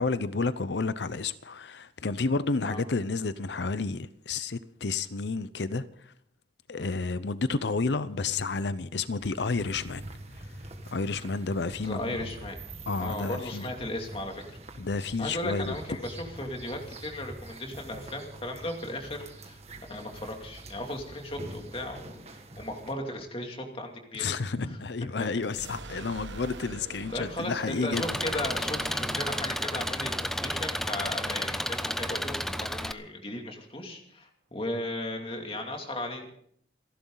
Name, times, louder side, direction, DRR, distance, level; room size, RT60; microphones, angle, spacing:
voice 1, 0.0-5.8 6.7-10.1 10.9-12.2 12.9-13.7 14.8-15.7 24.1-28.1, left 4 dB, 70° left, 0.7 m, -30 dB
sound 1, 9.2-22.9, right 1 dB, 35° right, 1.9 m, -45 dB
voice 2, 11.8-12.6 13.0-14.6 15.2-19.6 19.9-24.3 24.6-24.8 27.1-36.4, left 1 dB, 30° left, 2.5 m, -36 dB
sound 2, 25.4-33.1, right 3 dB, 85° right, 1.2 m, -46 dB
Engine, 27.9-32.9, equal, ahead, 0.5 m, -32 dB
28.0 x 11.5 x 3.9 m
head